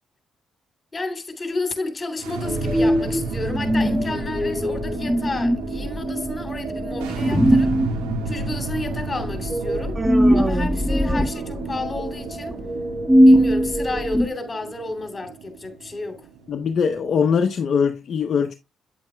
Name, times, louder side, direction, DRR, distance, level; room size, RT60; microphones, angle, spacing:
voice 1, 0.9-7.7 8.2-10.0 10.3-12.5 13.2-16.2, left 3 dB, 30° left, 2.9 m, -31 dB
sound 1, 2.1-17.4, right 4 dB, 90° right, 1.6 m, -33 dB
sound 2, 2.4-14.3, equal, ahead, 1.4 m, -21 dB
Human voice, 9.9-11.7, right 2 dB, 20° right, 0.6 m, -29 dB
voice 2, 16.5-18.5, left 6 dB, 60° left, 0.8 m, -21 dB
9.3 x 8.3 x 2.3 m
supercardioid pair, 50°, 0 cm